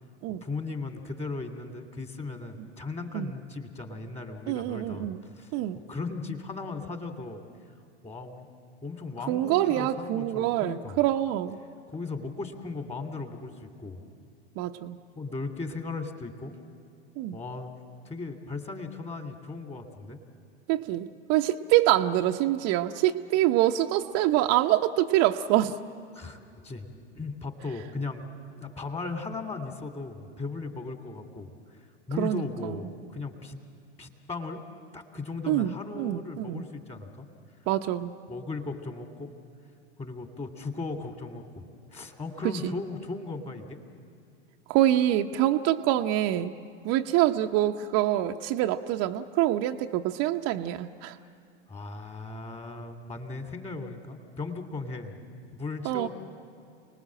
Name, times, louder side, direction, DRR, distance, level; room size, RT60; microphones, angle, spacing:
voice 1, 0.4-5.5 5.9-7.4 8.0-8.5 8.8-11.0 11.9-14.0 15.2-16.6 17.3-17.7 18.0-20.2 26.1-33.6 34.0-34.6 34.9-37.3 38.3-39.3 40.0-41.6 41.9-43.8 51.2-51.3 51.7-55.1 55.5-56.1, left 3 dB, 20° left, 6 dB, 2.8 m, -37 dB
voice 2, 4.5-5.2 5.5-5.8 9.3-11.6 14.6-15.0 17.2-17.4 20.7-25.8 32.2-32.7 35.5-36.7 37.7-38.1 42.6-42.7 44.7-46.5 46.8-51.2 55.8-56.1, right 13 dB, 45° right, 5 dB, 0.9 m, -25 dB
29.0 x 19.5 x 7.7 m, 2.4 s
hypercardioid pair, 95°, 33 cm